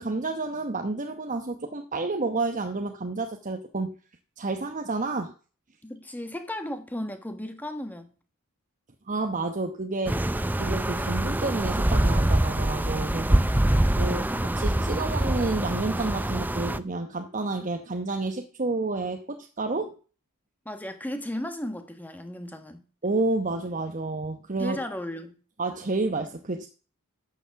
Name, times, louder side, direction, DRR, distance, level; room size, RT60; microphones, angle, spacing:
voice 1, 0.0-4.0 4.4-5.3 9.1-10.2 10.6-13.5 14.0-20.0 23.0-24.8 25.6-26.7, right 3 dB, 35° right, 1.0 m, -30 dB
voice 2, 5.8-8.1 13.4-14.5 20.6-22.8 24.6-25.4, left 1 dB, 10° left, 1.3 m, -36 dB
sound 1, 10.1-16.8, right 1 dB, 10° right, 0.4 m, -25 dB
11.5 x 7.2 x 7.0 m
head